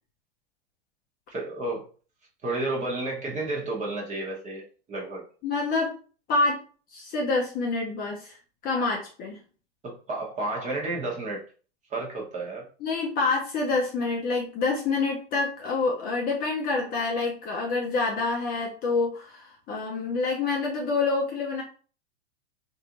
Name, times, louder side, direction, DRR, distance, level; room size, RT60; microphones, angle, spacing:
voice 1, 1.3-1.8 2.4-4.6 4.9-5.2 9.8-11.4 11.9-12.6, right 2 dB, 20° right, -1 dB, 1.0 m, -31 dB
voice 2, 5.4-5.9 6.3-6.6 6.9-8.4 8.6-9.4 12.8-21.6, left 3 dB, 25° left, -1 dB, 0.6 m, -27 dB
3.1 x 2.6 x 2.9 m, 0.39 s
hypercardioid pair, 135°, 34 cm